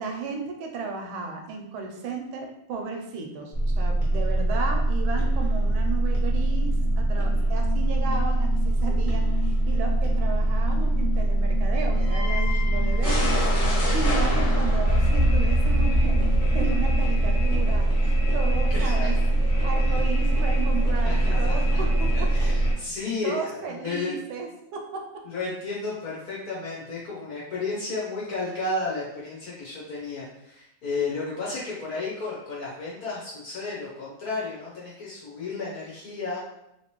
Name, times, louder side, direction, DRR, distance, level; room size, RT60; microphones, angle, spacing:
voice 1, 0.0-16.2 16.5-19.1 19.6-22.3 23.2-25.0, right 4 dB, 80° right, 2 dB, 1.4 m, -34 dB
sound 1, 3.5-22.7, right 1 dB, 40° left, 0.7 m, -22 dB
voice 2, 18.7-19.1 19.8-20.0 21.0-21.5 22.1-24.1 25.2-36.4, left 3 dB, 65° left, -5 dB, 1.0 m, -33 dB
3.2 x 2.9 x 3.0 m, 0.83 s
omnidirectional pair, 2.3 m